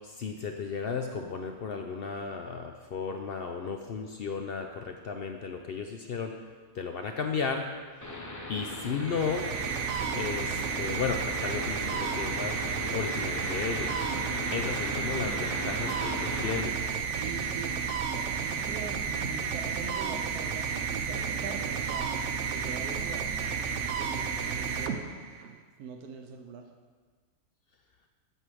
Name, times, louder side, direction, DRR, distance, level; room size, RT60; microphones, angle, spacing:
voice 1, 0.0-6.3 6.7-7.7 8.5-9.5 10.1-12.6 12.9-14.0 14.5-16.8, left 5 dB, 65° left, 4 dB, 0.5 m, -34 dB
sound 1, 8.0-16.6, left 1 dB, 15° left, 0.7 m, -38 dB
sound 2, 9.0-25.5, right 6 dB, 60° right, 0.8 m, -32 dB
voice 2, 17.2-22.1 22.5-23.4 24.0-25.1 25.8-26.7, right 5 dB, 85° right, 4 dB, 1.3 m, -42 dB
8.1 x 5.5 x 6.2 m, 1.5 s
omnidirectional pair, 1.6 m